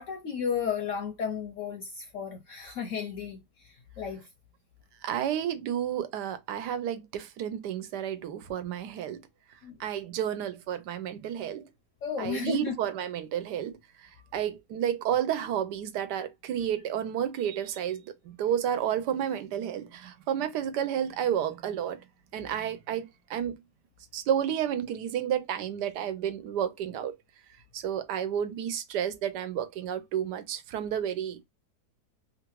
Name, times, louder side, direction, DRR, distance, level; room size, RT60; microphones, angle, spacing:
voice 1, 0.0-4.3 9.6-9.8 12.0-12.8, left 6 dB, 70° left, 0.8 m, -33 dB
voice 2, 5.0-9.2 9.8-11.7 12.2-22.0 22.3-23.6 24.1-27.2 27.7-31.4, right 9 dB, 85° right, 1.2 m, -31 dB
2.9 x 2.5 x 2.9 m
omnidirectional pair, 1.8 m